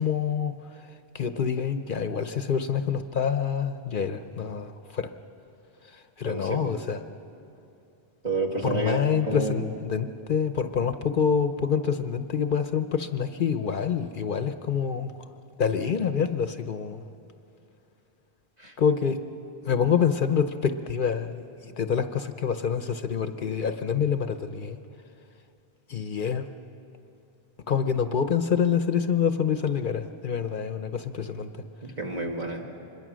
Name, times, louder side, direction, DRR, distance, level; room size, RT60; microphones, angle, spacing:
voice 1, 0.0-5.1 5.8-7.0 8.6-15.3 15.6-17.0 18.8-19.2 19.6-24.8 25.9-26.5 27.7-31.5, left 7 dB, 55° left, 9 dB, 0.8 m, -27 dB
voice 2, 6.2-6.7 8.2-9.0 9.3-9.6 18.6-18.7 31.8-32.6, right 2 dB, 40° right, 0 dB, 2.3 m, -30 dB
25.5 x 21.5 x 6.2 m, 2.7 s
omnidirectional pair, 1.1 m